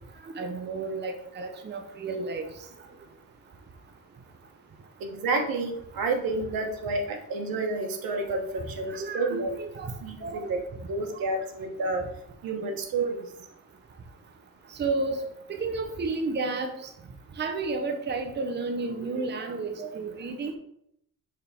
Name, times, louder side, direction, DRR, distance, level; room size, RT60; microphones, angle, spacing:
voice 1, 0.3-2.5 8.9-9.9 10.2-10.5 14.8-15.2 15.5-16.9 17.4-20.6, right 3 dB, 30° right, 5 dB, 0.7 m, -31 dB
voice 2, 5.0-9.5 10.0-10.6 10.8-12.1 12.4-13.2, right 3 dB, 80° right, 4 dB, 1.2 m, -30 dB
6.5 x 3.5 x 4.2 m, 0.72 s
cardioid pair, 125°, 34 cm